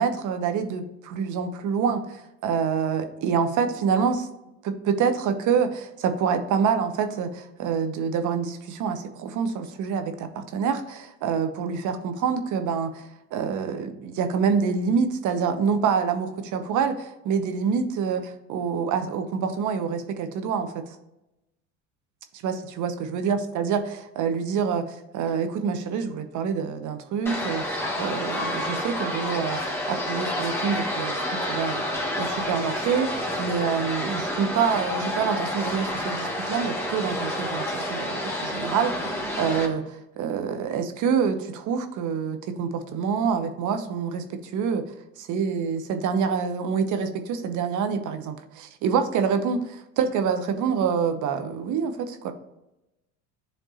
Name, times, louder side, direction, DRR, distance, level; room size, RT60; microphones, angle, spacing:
voice 1, 0.0-4.3 4.6-18.2 18.5-20.8 22.4-24.8 25.1-27.7 28.0-31.2 31.5-31.8 32.2-44.8 45.2-52.3, right 6 dB, 50° right, 8 dB, 1.0 m, -26 dB
sound 1, 27.3-39.7, left 1 dB, 5° left, 1.6 m, -29 dB
10.0 x 3.4 x 2.8 m, 0.92 s
hypercardioid pair, 85°, 38 cm